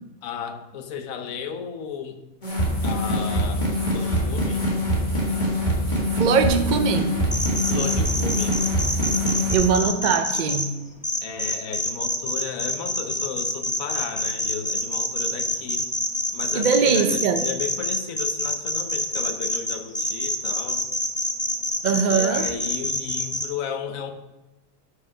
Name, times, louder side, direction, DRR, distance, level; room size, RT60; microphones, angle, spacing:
voice 1, 0.2-2.2 2.8-4.7 7.7-8.6 11.2-15.9 16.3-20.8 22.0-24.1, left 7 dB, 65° left, 7 dB, 1.2 m, -34 dB
sound 1, 2.4-9.6, equal, 30° left, 1.9 m, -24 dB
voice 2, 6.1-7.1 9.5-10.7 16.5-17.4 21.8-22.5, right 5 dB, 60° right, 7 dB, 0.4 m, -21 dB
sound 2, 7.3-10.6 11.0-23.5, left 1 dB, 10° left, 0.3 m, -26 dB
8.2 x 5.5 x 5.4 m, 1.0 s
omnidirectional pair, 1.7 m